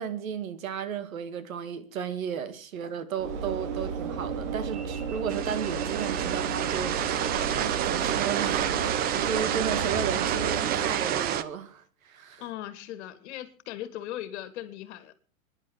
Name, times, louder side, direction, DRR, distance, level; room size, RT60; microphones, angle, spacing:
voice 1, 0.0-12.4, right 7 dB, 80° right, 2.4 m, -34 dB
Train / Engine / Alarm, 3.2-11.4, right 6 dB, 60° right, 2.7 m, -33 dB
sound 1, 5.3-11.4, right 10 dB, 20° right, 0.7 m, -29 dB
voice 2, 12.4-15.1, left 13 dB, 55° left, 2.2 m, -38 dB
24.0 x 11.0 x 4.5 m
supercardioid pair, 145°, 40 cm